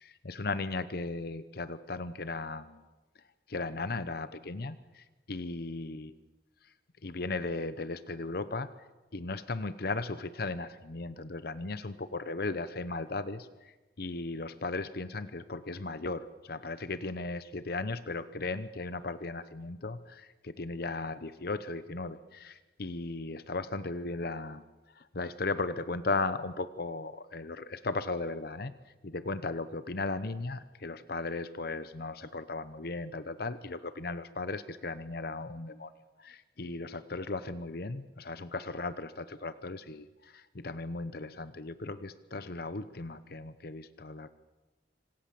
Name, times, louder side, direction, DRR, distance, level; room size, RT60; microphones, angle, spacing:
voice 1, 0.0-2.8 3.5-6.1 6.6-6.7 7.0-8.7 9.1-35.9 36.2-44.3, left 3 dB, 55° left, 13 dB, 0.9 m, -36 dB
26.5 x 26.5 x 7.6 m, 1.1 s
head